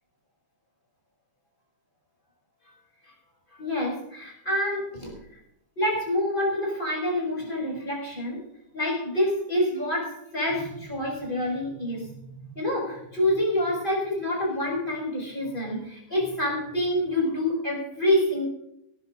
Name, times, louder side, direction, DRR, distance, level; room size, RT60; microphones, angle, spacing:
voice 1, 3.6-5.1 5.8-8.4 8.7-12.1 12.5-18.5, left 1 dB, 15° left, -2 dB, 6.3 m, -27 dB
21.0 x 10.5 x 3.9 m, 0.78 s
omnidirectional pair, 3.4 m